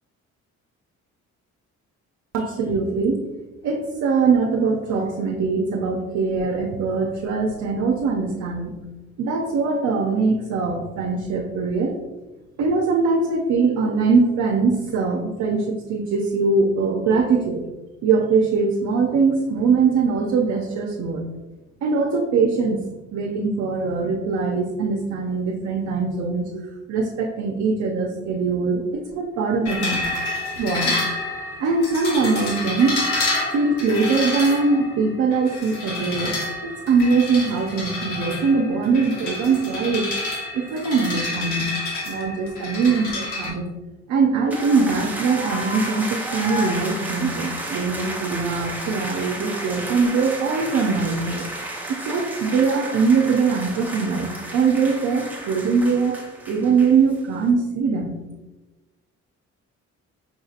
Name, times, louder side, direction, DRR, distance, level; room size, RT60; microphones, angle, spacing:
voice 1, 2.3-3.3 3.6-8.7 9.2-12.0 12.6-17.7 18.0-21.3 21.8-22.8 23.1-30.1 30.6-30.9 31.6-33.1 33.5-40.1 40.5-41.7 42.1-43.6 44.1-51.5 51.9-56.1 56.5-58.2, right 4 dB, 70° right, 1 dB, 0.6 m, -22 dB
sound 1, 29.7-43.5, left 2 dB, 85° left, 1.1 m, -29 dB
sound 2, 44.5-57.2, right 1 dB, 5° right, 0.7 m, -32 dB
5.2 x 2.7 x 2.4 m, 1.1 s
cardioid pair, 90°, 30 cm